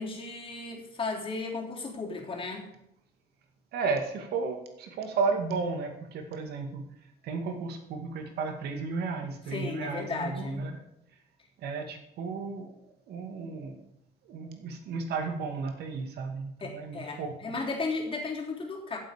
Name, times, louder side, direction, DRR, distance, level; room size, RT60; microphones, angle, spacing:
voice 1, 0.0-2.7 9.5-10.7 16.6-19.0, left 3 dB, 30° left, -1 dB, 3.7 m, -34 dB
voice 2, 3.7-6.8 7.2-10.8 11.6-13.8 14.2-17.5, right 4 dB, 70° right, 4 dB, 2.2 m, -34 dB
16.0 x 7.9 x 5.1 m, 0.80 s
cardioid pair, 110°, 17 cm